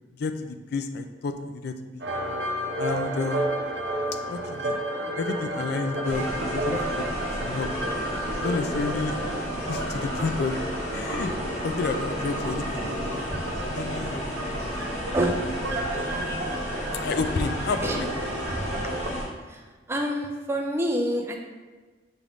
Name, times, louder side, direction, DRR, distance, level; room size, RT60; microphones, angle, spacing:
voice 1, 0.2-2.1 2.8-3.5 4.3-4.8 5.2-7.0 7.4-7.7 8.4-9.2 9.7-10.6 10.9-11.3 11.6-13.2 13.7-14.9 15.9-16.4 17.0-18.1, left 4 dB, 65° left, 8 dB, 0.4 m, -31 dB
sound 1, 2.0-19.1, right 1 dB, 70° right, 0.6 m, -32 dB
sound 2, 6.0-19.2, equal, 40° left, 1.2 m, -33 dB
voice 2, 15.1-15.5 17.8-18.0 18.5-18.7 19.5-19.6 19.9-21.4, right 1 dB, 15° right, 1 dB, 0.4 m, -27 dB
6.0 x 2.5 x 3.4 m, 1.3 s
head